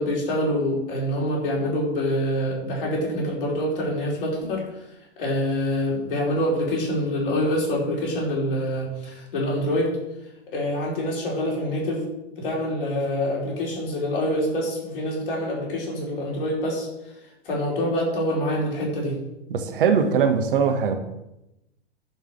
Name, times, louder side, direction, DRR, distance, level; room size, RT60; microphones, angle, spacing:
voice 1, 0.0-4.6 5.2-9.9 10.5-12.0 12.4-16.9 17.4-19.2, equal, 55° left, -3 dB, 4.6 m, -25 dB
voice 2, 19.5-21.0, right 6 dB, 55° right, 6 dB, 1.5 m, -21 dB
10.5 x 5.4 x 6.6 m, 0.90 s
figure-of-eight pair, 100°, 32 cm